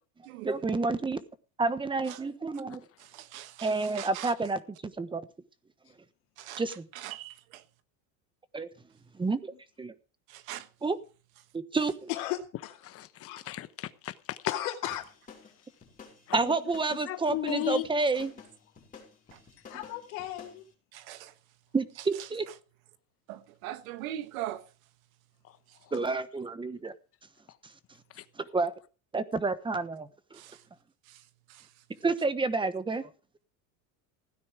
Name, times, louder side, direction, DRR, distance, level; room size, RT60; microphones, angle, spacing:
voice 1, 0.4-1.2 1.6-2.8 3.6-4.6 5.0-5.3 6.6-6.8 8.5-8.7 9.1-9.9 10.8-11.0 11.5-12.1 16.3-18.3 21.7-22.5 25.9-26.9 28.4-28.7 29.1-30.4 32.0-33.1, right 3 dB, 10° right, 1.1 m, -29 dB
voice 2, 3.0-4.3 6.4-7.6 10.3-10.7 20.9-21.3 22.2-22.5 23.3-24.7 25.7-25.8 30.3-30.6 31.0-31.8, right 13 dB, 90° right, 1.4 m, -42 dB
voice 3, 12.1-12.8 13.2-13.4 14.5-15.1 19.7-20.6, left 13 dB, 75° left, 2.6 m, -35 dB
voice 4, 12.8-14.1 16.3-16.4 17.0-17.9, left 13 dB, 35° left, 1.1 m, -35 dB
sound 1, 14.9-20.6, left 6 dB, 20° left, 5.5 m, -52 dB
16.0 x 9.5 x 4.9 m
supercardioid pair, 135°, 40 cm